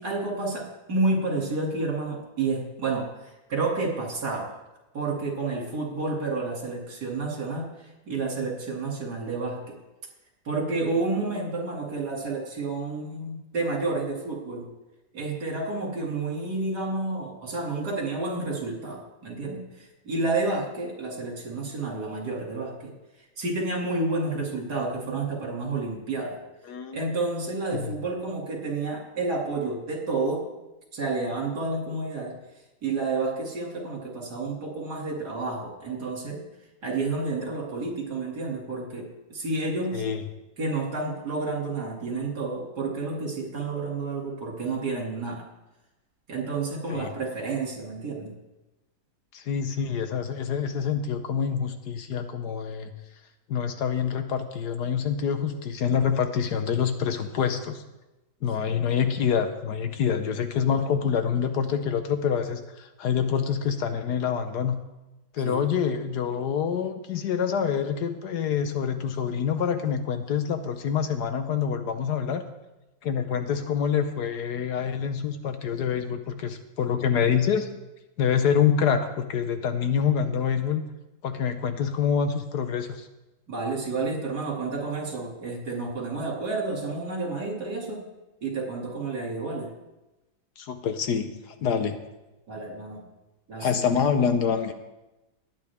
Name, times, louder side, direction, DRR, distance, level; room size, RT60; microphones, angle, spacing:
voice 1, 0.0-3.1 3.5-4.5 4.9-7.7 8.1-9.6 10.4-14.6 15.1-19.6 20.0-22.9 23.4-26.4 26.9-30.4 30.9-32.3 32.8-36.4 36.8-40.0 40.6-45.4 46.3-48.3 65.4-65.6 83.5-88.0 88.4-89.7 92.5-93.0 93.5-93.7, right 3 dB, 65° right, -1 dB, 3.2 m, -30 dB
voice 2, 26.6-27.0 27.7-27.9 39.9-40.2 46.9-47.1 49.3-52.9 53.5-57.8 58.4-64.8 65.3-72.4 73.0-77.7 78.2-80.8 81.2-83.1 90.6-92.0 93.6-94.7, left 7 dB, 70° left, 8 dB, 1.4 m, -26 dB
19.5 x 9.0 x 3.6 m, 1.0 s
omnidirectional pair, 1.9 m